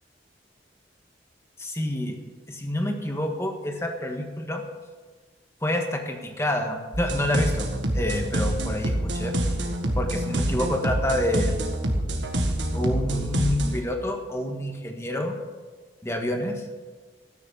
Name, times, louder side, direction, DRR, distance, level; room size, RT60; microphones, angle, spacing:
voice 1, 1.6-2.2 2.5-4.6 5.6-7.7 7.9-9.3 9.9-11.5 12.7-15.3 16.0-16.6, left 1 dB, 15° left, 4 dB, 1.5 m, -28 dB
sound 1, 6.9-13.8, right 1 dB, 90° right, 1.8 m, -26 dB
13.5 x 9.8 x 6.6 m, 1.4 s
head